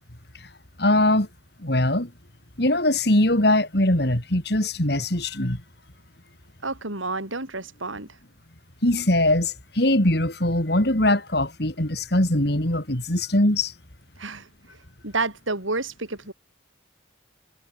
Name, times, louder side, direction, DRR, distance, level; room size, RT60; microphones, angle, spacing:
voice 1, 0.8-1.3 1.6-2.1 2.6-5.6 8.8-13.7, left 1 dB, 55° left, 3.6 m, -21 dB
voice 2, 6.6-8.1 14.2-14.5 15.0-16.3, right 3 dB, 90° right, 6.3 m, -29 dB
head